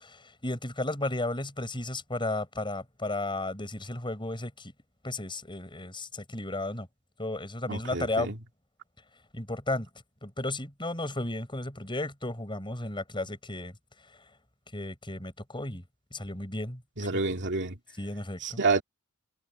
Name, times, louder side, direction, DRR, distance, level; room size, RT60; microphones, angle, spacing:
voice 1, 0.0-4.7 5.0-6.9 7.2-8.3 9.3-9.9 10.2-13.7 14.7-15.8 16.1-17.1 18.0-18.6, left 2 dB, 20° left, 7.3 m, -34 dB
voice 2, 7.7-8.3 17.0-17.8 18.4-18.8, right 3 dB, 55° right, 2.6 m, -28 dB
head